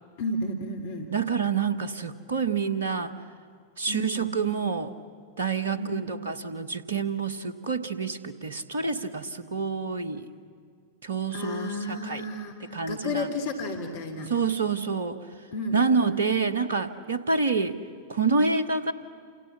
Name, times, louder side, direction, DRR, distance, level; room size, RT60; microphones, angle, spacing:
voice 1, 0.2-1.1 3.9-4.3 5.7-6.1 11.3-12.6 12.9-14.3 15.5-16.2, left 1 dB, 55° left, 4 dB, 3.0 m, -32 dB
voice 2, 1.1-3.1 3.8-4.9 5.4-10.3 11.0-12.2 12.6-13.3 14.3-15.2 15.7-17.8 18.1-18.9, right 5 dB, 65° right, 13 dB, 1.5 m, -27 dB
29.0 x 28.0 x 7.3 m, 2.2 s
figure-of-eight pair, 90°, 0 cm